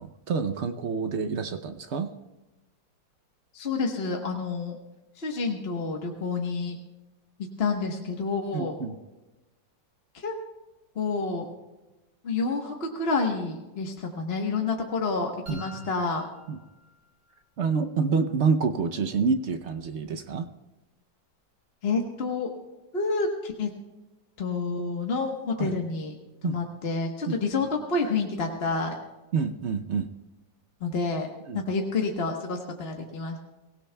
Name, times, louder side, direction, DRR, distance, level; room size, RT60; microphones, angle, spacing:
voice 1, 0.0-2.1 8.5-9.0 15.5-15.9 16.5-16.6 17.6-20.5 25.6-25.8 26.4-26.6 27.3-27.4 29.3-30.1 31.5-31.6, right 5 dB, 65° right, 8 dB, 0.7 m, -28 dB
voice 2, 3.5-4.8 5.2-6.8 7.6-8.7 10.1-10.3 10.9-11.5 12.2-16.2 21.8-22.5 22.9-23.7 24.4-26.1 26.4-28.9 30.8-31.3 31.5-33.4, left 4 dB, 40° left, 1 dB, 1.2 m, -29 dB
sound 1, 15.5-17.5, left 2 dB, 90° right, 3.8 m, -49 dB
24.0 x 16.5 x 2.3 m, 1.1 s
omnidirectional pair, 2.0 m